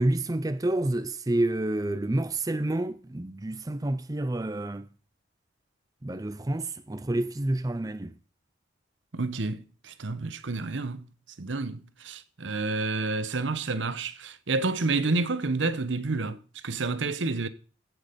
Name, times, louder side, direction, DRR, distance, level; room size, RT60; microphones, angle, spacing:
voice 1, 0.0-4.9 6.0-8.1, right 1 dB, 20° right, 0.5 m, -28 dB
voice 2, 9.1-11.1 11.4-17.5, right 3 dB, 75° right, 0.9 m, -29 dB
16.0 x 6.2 x 5.2 m
head